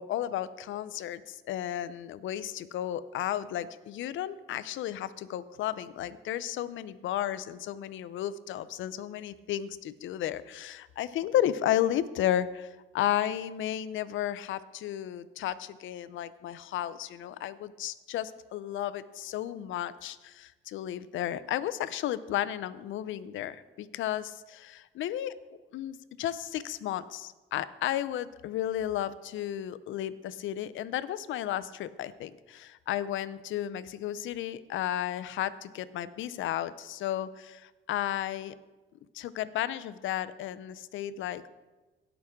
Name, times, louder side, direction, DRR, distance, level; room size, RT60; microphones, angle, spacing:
voice 1, 0.0-25.3 25.7-38.6 39.1-41.4, left 11 dB, 75° left, 15 dB, 0.6 m, -33 dB
17.5 x 6.0 x 3.6 m, 1.2 s
cardioid pair, 90°, 20 cm